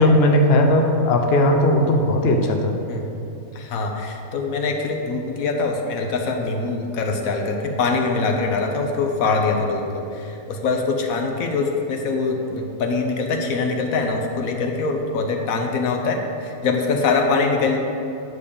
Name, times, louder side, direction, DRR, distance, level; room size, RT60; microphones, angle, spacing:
voice 1, 0.0-2.8, left 1 dB, 55° left, 3 dB, 0.8 m, -17 dB
voice 2, 3.5-17.8, left 4 dB, 75° left, 3 dB, 1.2 m, -23 dB
9.4 x 3.6 x 6.7 m, 2.7 s
omnidirectional pair, 1.5 m